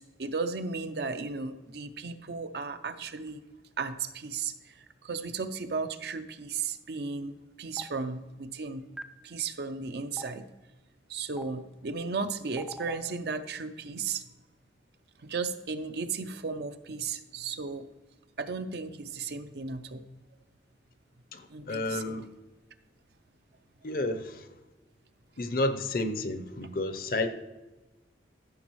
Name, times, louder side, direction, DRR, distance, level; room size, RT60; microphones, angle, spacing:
voice 1, 0.0-3.4 3.8-8.8 9.2-10.5 11.1-14.2 15.2-17.9 18.4-20.0 21.5-22.2, right 4 dB, 60° right, 0.5 m, -35 dB
Stream, 7.8-7.9 9.0-9.1 10.2-10.3 11.4-11.5 12.6-12.9, right 1 dB, 5° right, 0.3 m, -39 dB
voice 2, 21.3-22.3 23.8-24.5 25.4-27.3, left 2 dB, 50° left, 0.7 m, -31 dB
13.5 x 6.2 x 3.1 m
head